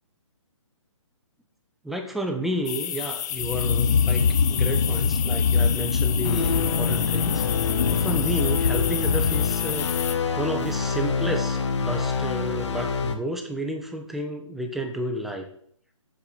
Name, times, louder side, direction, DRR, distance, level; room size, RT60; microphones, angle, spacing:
voice 1, 1.8-7.4 7.9-9.9 10.3-15.5, right 1 dB, ahead, 3 dB, 0.8 m, -31 dB
sound 1, 2.7-10.2, left 10 dB, 35° left, 0.6 m, -31 dB
sound 2, 3.3-9.9, left 5 dB, 75° left, 0.9 m, -24 dB
sound 3, 6.2-13.2, left 5 dB, 60° left, 1.2 m, -27 dB
8.0 x 4.7 x 7.0 m, 0.63 s
hypercardioid pair, 145°, 17 cm